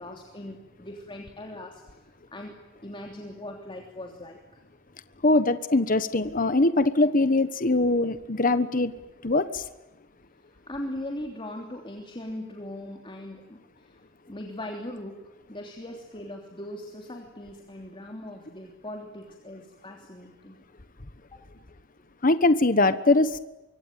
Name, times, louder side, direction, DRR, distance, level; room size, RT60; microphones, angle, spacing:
voice 1, 0.0-2.6 2.8-4.6 10.5-14.0 14.3-15.2 15.5-20.6 21.3-21.4, left 1 dB, 25° left, 2 dB, 3.2 m, -40 dB
voice 2, 5.2-8.9 9.2-9.6 22.2-23.4, left 2 dB, 45° left, 12 dB, 1.2 m, -22 dB
25.0 x 25.0 x 9.2 m, 1.0 s
head